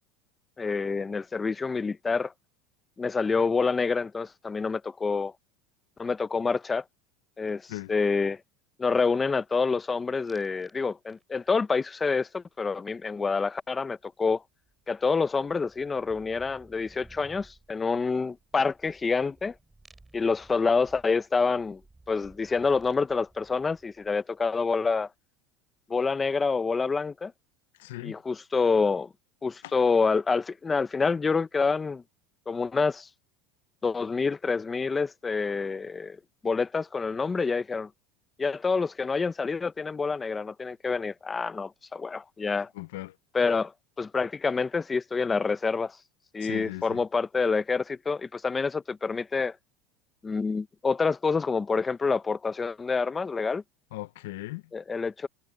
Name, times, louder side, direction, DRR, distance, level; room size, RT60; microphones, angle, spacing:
voice 1, 0.6-2.3 3.0-5.3 6.0-6.8 7.4-7.6 7.9-8.4 8.8-14.4 14.9-19.5 20.1-21.8 22.1-25.1 25.9-27.3 28.0-29.1 29.4-32.0 32.5-33.1 33.8-36.2 36.4-37.9 38.4-42.7 43.3-43.7 44.0-46.0 46.3-49.5 50.2-53.6 54.7-55.3, left 4 dB, 15° left, 0.7 m, -27 dB
sound 1, 10.3-10.8 11.1-11.6 14.0-14.1 14.3-24.4, right 2 dB, 10° right, 6.7 m, -57 dB
voice 2, 27.8-28.1 29.6-29.7 42.7-43.2 46.4-47.0 53.9-54.6, left 18 dB, 85° left, 0.6 m, -38 dB
supercardioid pair, 135°, 0 cm